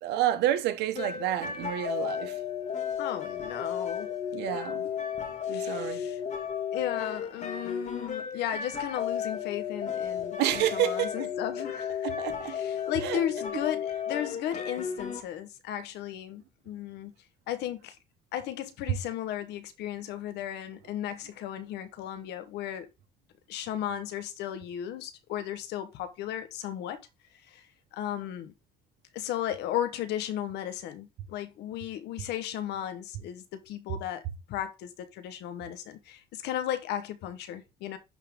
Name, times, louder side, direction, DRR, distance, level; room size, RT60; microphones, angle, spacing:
voice 1, 0.0-2.4 4.3-4.9 5.5-6.0 10.4-11.3 12.0-12.6 13.0-13.2, right 13 dB, 85° right, 1.3 m, -29 dB
sound 1, 1.0-15.2, left 8 dB, 45° left, 1.8 m, -34 dB
voice 2, 3.0-4.1 5.5-6.2 6.7-12.1 12.4-17.1 17.5-18.0 18.3-22.9 23.5-27.0 27.5-27.6 27.9-28.5 29.1-38.0, left 11 dB, 80° left, 1.1 m, -35 dB
11.0 x 3.7 x 3.6 m
cardioid pair, 110°, 17 cm